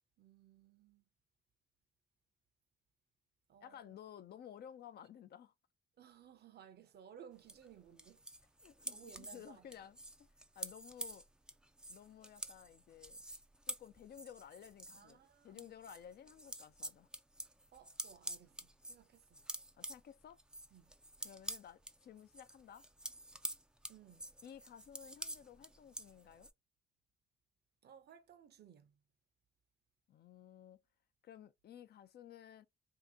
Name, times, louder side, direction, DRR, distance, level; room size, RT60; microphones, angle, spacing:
voice 1, 0.2-1.0 3.5-4.0 6.0-8.2 8.9-9.7 14.9-15.7 17.7-19.4 20.7-20.9 23.9-24.3 27.8-29.0, right 9 dB, 55° right, 0.7 m, -59 dB
voice 2, 3.6-5.5 8.6-10.3 10.6-11.3 11.9-13.2 13.7-17.1 19.7-20.4 21.2-22.8 24.4-26.5 30.1-30.8 31.2-32.7, left 9 dB, 55° left, 0.5 m, -55 dB
sound 1, 7.5-15.1 15.5-26.5, right 1 dB, 5° right, 0.4 m, -48 dB
2.8 x 2.5 x 3.5 m
cardioid pair, 90°, 20 cm